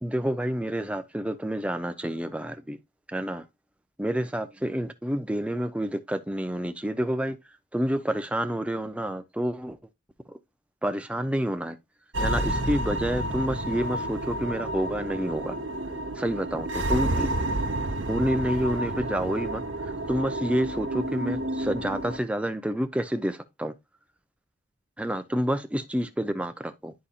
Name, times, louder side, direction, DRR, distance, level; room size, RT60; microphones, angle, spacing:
voice 1, 0.0-2.8 3.1-3.4 4.0-7.4 7.7-9.8 10.3-10.4 10.8-11.8 12.2-15.6 16.2-17.3 18.1-23.7 25.0-26.9, equal, 5° right, 0.5 m, -29 dB
sound 1, 12.1-22.2, right 1 dB, 65° right, 1.0 m, -30 dB
11.0 x 4.2 x 2.4 m
head